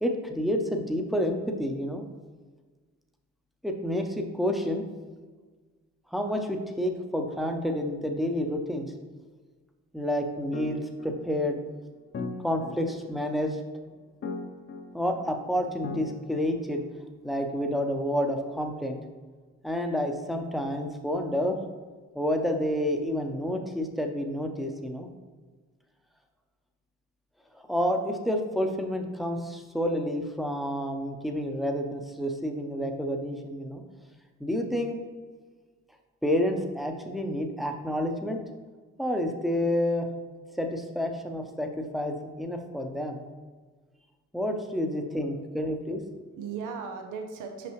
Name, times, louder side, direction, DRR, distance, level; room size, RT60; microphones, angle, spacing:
voice 1, 0.0-2.0 3.6-4.8 6.1-8.9 9.9-11.6 12.4-13.6 14.9-16.8 17.2-19.0 19.6-21.6 22.1-25.1 27.5-33.8 34.4-35.0 36.2-38.4 39.0-40.1 40.6-43.2 44.3-46.0, equal, ahead, 4 dB, 0.7 m, -29 dB
sound 1, 10.5-17.2, left 3 dB, 40° left, 0.7 m, -40 dB
voice 2, 44.9-45.4 45.9-47.7, right 5 dB, 85° right, 4 dB, 0.7 m, -39 dB
5.7 x 5.3 x 3.2 m, 1.4 s
cardioid pair, 90°, 30 cm